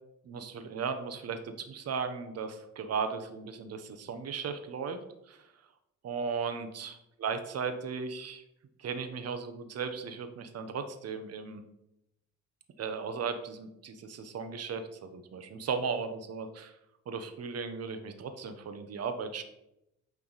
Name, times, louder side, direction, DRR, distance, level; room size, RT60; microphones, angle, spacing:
voice 1, 0.2-5.0 5.3-5.5 6.0-8.4 8.8-11.6 12.8-16.7 17.1-19.4, right 5 dB, 55° right, 9 dB, 0.9 m, -36 dB
8.8 x 3.5 x 4.0 m, 0.85 s
cardioid pair, 90°, 30 cm